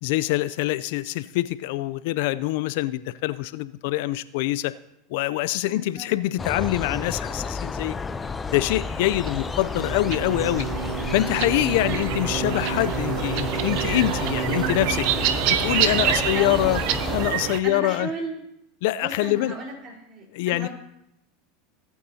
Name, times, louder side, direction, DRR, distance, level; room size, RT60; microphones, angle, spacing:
voice 1, 0.0-4.7 5.1-8.0 8.5-10.7 11.1-15.1 15.5-16.8 17.1-18.1 18.8-19.5 20.3-20.7, left 16 dB, 70° left, 16 dB, 0.4 m, -25 dB
voice 2, 5.7-6.1 11.8-12.1 16.0-17.0 17.6-18.4 19.0-20.7, right 2 dB, 45° right, 0 dB, 4.1 m, -35 dB
sound 1, 6.4-17.3, left 4 dB, 20° left, 0.6 m, -32 dB
sound 2, 9.0-17.6, right 9 dB, 65° right, 0.8 m, -27 dB
18.5 x 8.5 x 2.8 m, 0.82 s
hypercardioid pair, 100°, 0 cm